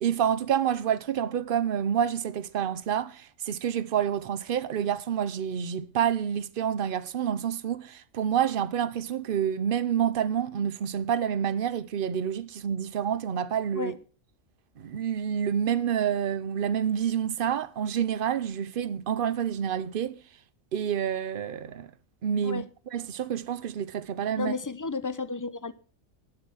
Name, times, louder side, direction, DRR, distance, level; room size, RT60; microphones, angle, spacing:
voice 1, 0.0-13.9 14.8-20.2 20.7-21.9 22.2-22.6 22.9-24.5, right 8 dB, 50° right, 0.9 m, -28 dB
voice 2, 24.4-25.7, left 4 dB, 25° left, 0.4 m, -32 dB
11.5 x 7.7 x 6.3 m
omnidirectional pair, 1.4 m